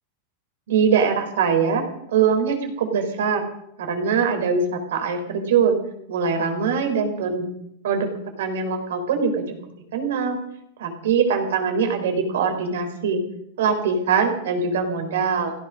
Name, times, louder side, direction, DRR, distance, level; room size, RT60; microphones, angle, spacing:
voice 1, 0.7-3.4 3.8-5.8 6.1-7.5 7.8-8.1 8.4-9.6 9.9-10.4 10.8-13.2 13.6-15.5, right 6 dB, 90° right, 6 dB, 4.1 m, -22 dB
16.0 x 14.0 x 6.4 m, 0.74 s
supercardioid pair, 160°, 0 cm